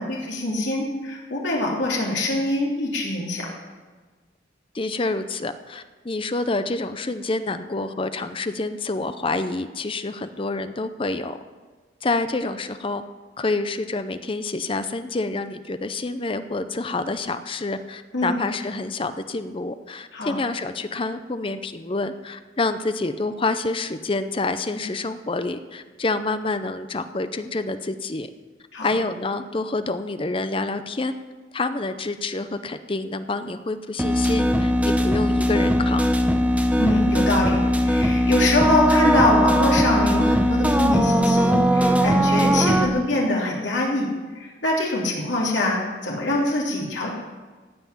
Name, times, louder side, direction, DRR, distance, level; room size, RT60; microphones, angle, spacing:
voice 1, 0.0-3.5 18.1-18.4 20.1-20.4 28.7-28.9 36.7-37.6 37.8-44.1 44.3-47.1, left 1 dB, 75° left, -3 dB, 3.1 m, -24 dB
voice 2, 4.7-11.4 12.0-13.0 13.4-28.3 28.8-31.2 31.5-36.1, left 3 dB, 30° left, 10 dB, 0.6 m, -27 dB
sound 1, 34.0-42.9, equal, 5° right, 0.8 m, -19 dB
16.5 x 5.9 x 9.9 m, 1.4 s
head